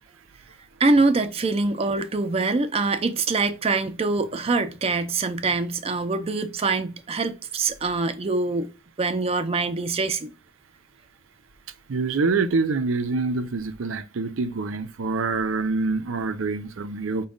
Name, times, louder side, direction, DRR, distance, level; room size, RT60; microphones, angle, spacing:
voice 1, 0.8-8.7 9.0-10.3, right 3 dB, 30° right, 0.4 m, -24 dB
voice 2, 11.9-17.3, right 4 dB, 80° right, 0.5 m, -26 dB
5.1 x 2.3 x 3.6 m
head